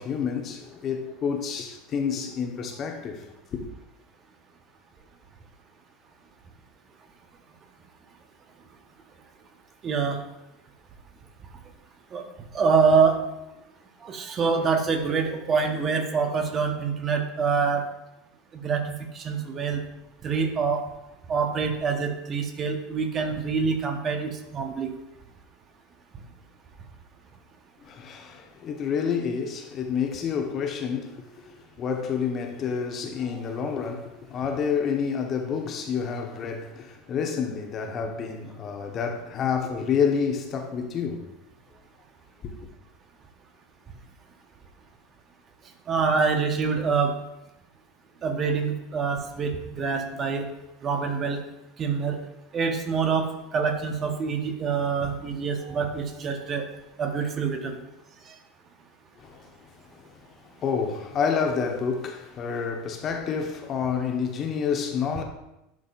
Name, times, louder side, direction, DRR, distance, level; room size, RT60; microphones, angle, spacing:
voice 1, 0.0-3.7 27.8-41.3 42.4-42.7 59.2-59.5 59.8-65.2, left 6 dB, 40° left, 1.0 m, -29 dB
voice 2, 9.8-10.2 12.1-12.2 12.5-13.2 14.0-17.8 18.5-19.8 20.2-20.8 21.3-24.9 33.2-33.4 45.9-47.2 48.2-50.5 50.8-51.4 51.8-52.2 52.5-56.6 57.0-57.8 58.3-58.4, right 5 dB, 35° right, 1.0 m, -25 dB
10.5 x 3.9 x 2.5 m
hypercardioid pair, 80°, 0 cm